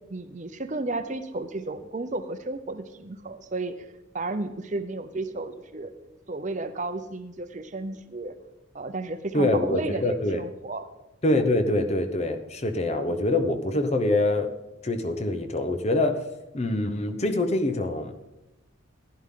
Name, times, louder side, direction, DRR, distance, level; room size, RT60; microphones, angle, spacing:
voice 1, 0.1-3.9 4.1-5.9 6.3-8.3 8.7-10.9, right 2 dB, 35° right, 9 dB, 0.7 m, -33 dB
voice 2, 9.3-10.4 11.2-14.5 14.8-16.2 16.5-18.1, left 2 dB, 30° left, 8 dB, 0.8 m, -25 dB
15.0 x 11.0 x 3.8 m, 0.99 s
head